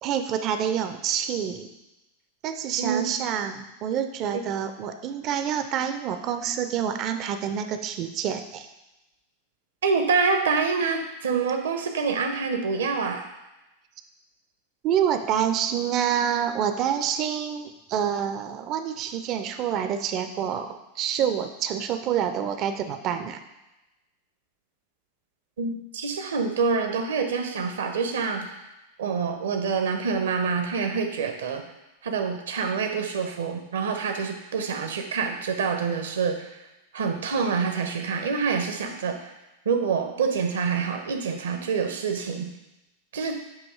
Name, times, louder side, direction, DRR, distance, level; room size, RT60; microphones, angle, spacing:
voice 1, 0.0-1.7 2.4-8.7 14.8-23.4, right 9 dB, 35° right, 8 dB, 0.5 m, -27 dB
voice 2, 2.8-3.2 4.3-4.4 9.8-13.2 25.6-28.6 29.0-31.6 32.0-36.6 36.9-39.3 39.6-42.5 43.1-43.4, right 5 dB, 65° right, 5 dB, 0.8 m, -26 dB
7.7 x 2.9 x 4.7 m, 0.97 s
figure-of-eight pair, 90°, 0 cm